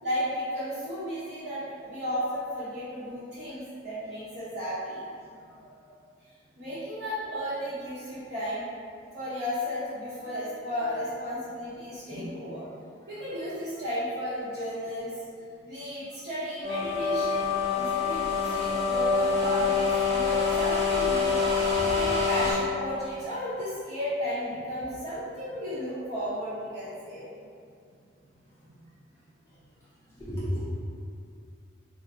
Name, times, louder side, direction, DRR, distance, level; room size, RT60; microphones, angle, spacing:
voice 1, 0.0-5.0 6.6-8.6 9.1-12.7 13.1-15.2 15.6-17.5 17.7-27.3, equal, 55° right, -17 dB, 1.1 m, -34 dB
sound 1, 16.6-22.5, left 5 dB, 30° left, 1.2 m, -26 dB
voice 2, 30.2-30.7, equal, 15° left, -11 dB, 0.7 m, -34 dB
2.6 x 2.4 x 4.2 m, 2.4 s
head